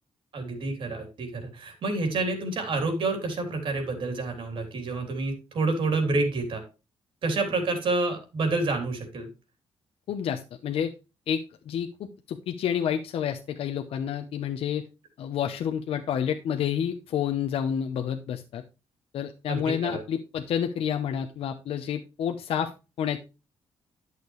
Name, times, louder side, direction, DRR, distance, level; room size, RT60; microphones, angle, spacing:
voice 1, 0.3-6.6 7.2-9.3 19.5-20.0, right 3 dB, 60° right, 5 dB, 3.2 m, -28 dB
voice 2, 10.1-10.9 11.3-11.4 11.7-14.8 15.2-18.6 19.1-22.7 23.0-23.2, left 8 dB, 75° left, 5 dB, 0.8 m, -29 dB
10.5 x 6.7 x 3.2 m, 0.29 s
cardioid pair, 120°, 10 cm